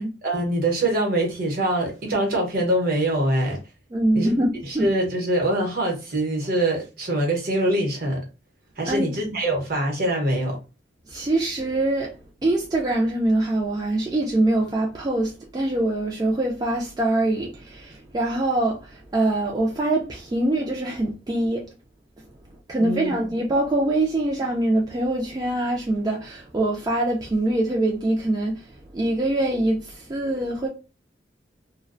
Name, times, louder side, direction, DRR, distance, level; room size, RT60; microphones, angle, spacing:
voice 1, 0.0-3.6 4.1-4.3 4.8-8.2 8.8-10.6 22.8-23.1, right 1 dB, 55° right, 0.9 m, -24 dB
voice 2, 3.9-4.9 8.9-9.2 11.1-12.1 12.4-21.6 22.7-30.7, right 1 dB, 20° right, 0.4 m, -24 dB
2.3 x 2.1 x 2.5 m
head